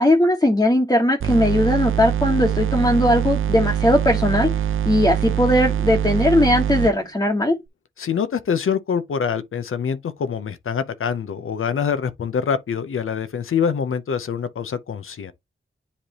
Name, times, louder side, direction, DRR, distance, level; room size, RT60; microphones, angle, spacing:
voice 1, 0.0-4.5 4.8-7.6, left 1 dB, 15° left, 1.2 m, -18 dB
sound 1, 1.2-6.9, right 9 dB, 75° right, 0.6 m, -23 dB
voice 2, 8.0-15.3, left 7 dB, 85° left, 0.7 m, -25 dB
9.9 x 3.3 x 2.9 m
wide cardioid pair, 110°, 21 cm